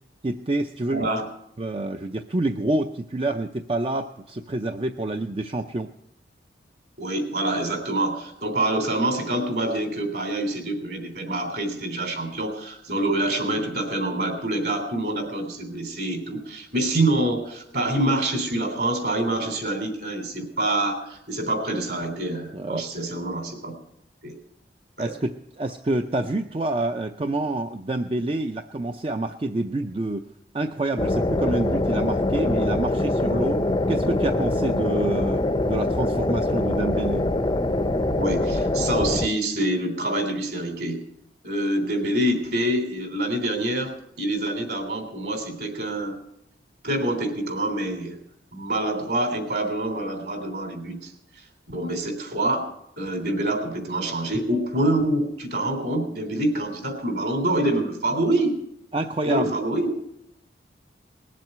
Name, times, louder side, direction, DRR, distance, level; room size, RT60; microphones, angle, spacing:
voice 1, 0.2-1.1 1.6-5.9 22.5-22.9 25.0-37.3 58.9-59.5, right 2 dB, 30° right, 6 dB, 0.5 m, -27 dB
voice 2, 0.9-1.2 7.0-23.7 24.2-24.3 25.0-25.1 38.1-41.0 41.4-46.2 46.8-48.2 48.5-52.7 53.0-58.6 59.2-59.9, right 1 dB, 60° right, 4 dB, 3.4 m, -26 dB
sound 1, 31.0-39.3, left 2 dB, 25° left, 0.5 m, -24 dB
19.5 x 7.6 x 8.0 m, 0.76 s
head